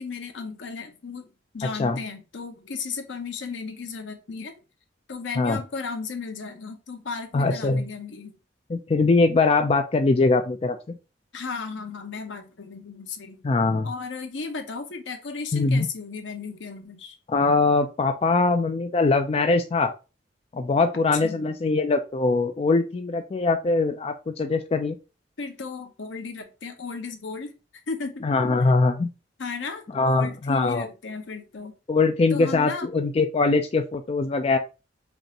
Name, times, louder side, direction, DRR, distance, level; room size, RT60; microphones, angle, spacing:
voice 1, 0.0-4.5 5.1-8.3 11.3-13.4 13.8-17.2 21.1-21.5 25.4-27.5 27.9-28.7 29.4-31.7 32.3-32.9, left 4 dB, 85° left, 0.7 m, -35 dB
voice 2, 7.3-7.8 8.7-11.0 13.4-13.9 15.5-15.9 17.3-19.9 20.5-25.0 28.2-29.1 29.9-30.9 31.9-34.6, left 3 dB, 35° left, 0.4 m, -22 dB
5.2 x 2.5 x 2.8 m
head